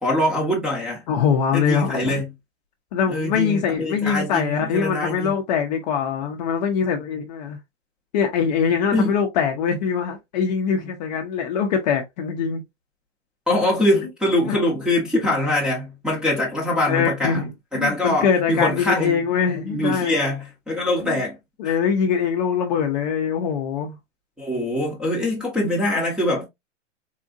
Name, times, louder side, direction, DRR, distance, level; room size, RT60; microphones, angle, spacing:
voice 1, 0.0-1.0 1.5-2.3 3.1-5.3 8.9-9.2 13.5-17.4 17.7-19.3 19.7-21.4 21.6-21.8 24.4-26.4, left 1 dB, ahead, 0.7 m, -23 dB
voice 2, 1.1-2.2 2.9-7.6 8.1-12.6 14.4-14.6 16.9-17.5 17.7-20.1 21.0-21.2 21.6-24.0, left 7 dB, 35° left, 0.6 m, -23 dB
3.7 x 2.6 x 2.4 m
hypercardioid pair, 145°, 37 cm